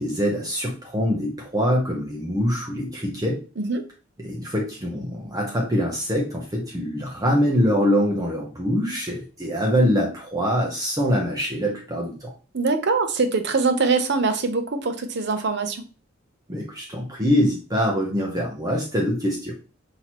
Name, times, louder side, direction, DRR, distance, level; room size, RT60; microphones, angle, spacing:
voice 1, 0.0-3.4 4.2-12.3 16.5-19.5, equal, 20° right, -1 dB, 0.7 m, -24 dB
voice 2, 12.5-15.8, right 4 dB, 60° right, 8 dB, 0.7 m, -23 dB
5.8 x 2.9 x 3.0 m, 0.34 s
head